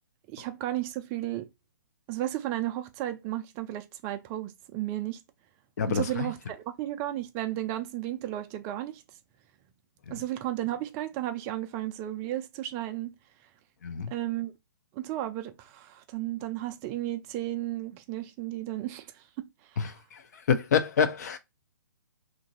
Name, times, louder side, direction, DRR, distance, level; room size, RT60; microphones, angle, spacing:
voice 1, 0.3-1.5 2.1-5.2 5.8-9.0 10.1-13.1 14.1-14.5 14.9-19.2 19.7-19.9, right 14 dB, 25° right, 0.3 m, -34 dB
voice 2, 5.8-6.3 10.1-10.2 13.8-14.1 19.8-21.4, left 6 dB, 55° left, 0.5 m, -27 dB
2.9 x 2.5 x 2.6 m
figure-of-eight pair, 125°, 11 cm